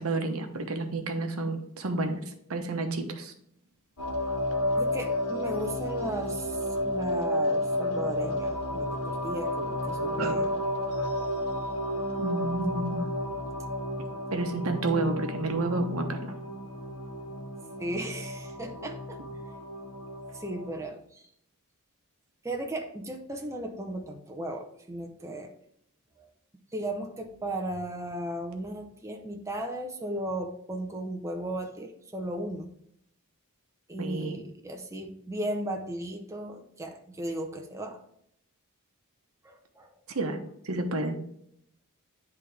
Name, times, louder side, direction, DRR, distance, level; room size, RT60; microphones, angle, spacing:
voice 1, 0.0-3.3 10.2-10.4 12.2-13.1 14.3-16.3 34.0-34.4 40.1-40.4 40.6-41.2, right 2 dB, 75° right, 5 dB, 1.0 m, -30 dB
sound 1, 4.0-20.8, left 1 dB, 80° left, 1.6 m, -32 dB
voice 2, 4.7-10.5 17.8-19.4 20.3-21.3 22.4-25.5 26.2-26.3 26.7-32.7 33.9-38.0 39.4-40.2, right 1 dB, 15° right, 3 dB, 0.7 m, -36 dB
10.5 x 3.5 x 3.4 m, 0.70 s
head